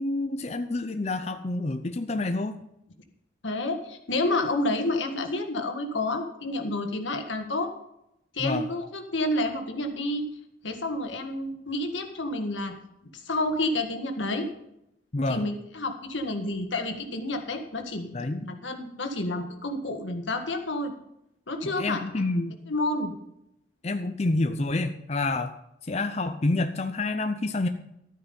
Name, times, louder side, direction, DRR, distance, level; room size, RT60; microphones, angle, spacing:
voice 1, 0.0-2.6 8.4-8.7 15.1-15.4 18.1-18.4 21.6-22.6 23.8-25.5 25.9-27.7, left 2 dB, 35° left, 8 dB, 0.6 m, -28 dB
voice 2, 3.4-7.7 8.3-10.3 10.6-12.8 13.1-14.5 15.3-20.9 21.5-22.1 22.7-23.1, left 2 dB, 85° left, 5 dB, 1.7 m, -29 dB
12.5 x 9.3 x 5.4 m, 0.81 s
head